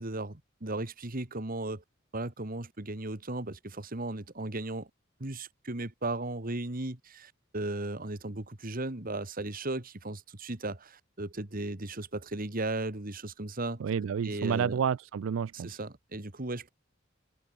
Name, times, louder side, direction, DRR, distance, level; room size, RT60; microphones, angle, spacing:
voice 1, 0.0-1.8 2.1-4.9 5.2-13.8 14.2-14.8 15.5-16.7, right 2 dB, 45° right, 2.1 m, -36 dB
voice 2, 13.8-15.8, right 7 dB, 80° right, 0.4 m, -30 dB
head